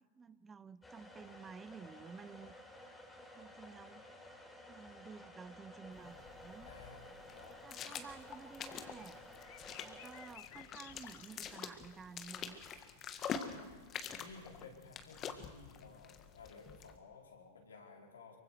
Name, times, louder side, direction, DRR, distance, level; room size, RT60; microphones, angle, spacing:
voice 1, 0.0-2.5 3.4-4.0 4.7-6.7 7.5-9.2 9.8-12.6 13.4-13.8, right 5 dB, 20° right, 17 dB, 0.6 m, -53 dB
sound 1, 0.8-10.3, left 1 dB, 10° left, 3.6 m, -54 dB
sound 2, 5.9-17.0, left 7 dB, 35° left, 1.6 m, -47 dB
voice 2, 6.6-8.0 13.2-13.7 14.2-18.4, left 4 dB, 80° left, 0 dB, 4.4 m, -56 dB
sound 3, 8.4-12.0 12.4-13.3, left 15 dB, 55° left, 0.8 m, -58 dB
24.5 x 24.0 x 4.6 m, 1.5 s
hypercardioid pair, 100°, 0 cm